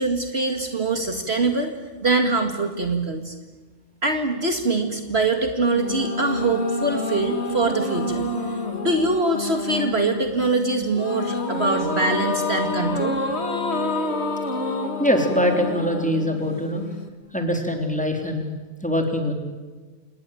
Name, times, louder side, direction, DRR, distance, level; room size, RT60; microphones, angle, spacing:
voice 1, 0.0-1.7 2.0-3.3 4.0-8.2 8.8-13.2, right 3 dB, 50° right, 5 dB, 2.3 m, -23 dB
sound 1, 5.7-17.1, left 2 dB, 50° left, 2.4 m, -28 dB
voice 2, 15.0-16.8 17.3-18.5 18.8-19.3, equal, 5° left, 3 dB, 3.9 m, -23 dB
28.0 x 19.5 x 9.2 m, 1.3 s
omnidirectional pair, 1.4 m